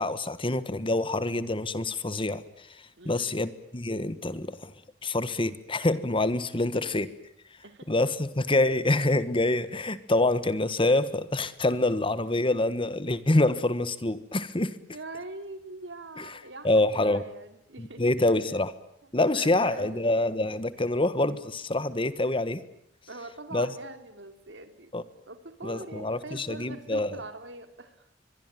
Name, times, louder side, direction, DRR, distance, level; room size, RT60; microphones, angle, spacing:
voice 1, 0.0-2.4 3.0-4.7 5.0-7.1 7.9-14.7 16.2-16.3 16.6-17.2 17.8-18.7 19.1-22.6 23.5-23.7 24.9-25.0 25.6-27.1, left 2 dB, 30° left, 14 dB, 1.4 m, -26 dB
voice 2, 3.0-3.4 6.7-6.9 7.6-7.9 14.9-18.1 19.3-20.1 23.1-24.9 25.3-28.0, right 2 dB, 75° right, 9 dB, 3.5 m, -43 dB
24.0 x 23.0 x 9.2 m, 0.72 s
head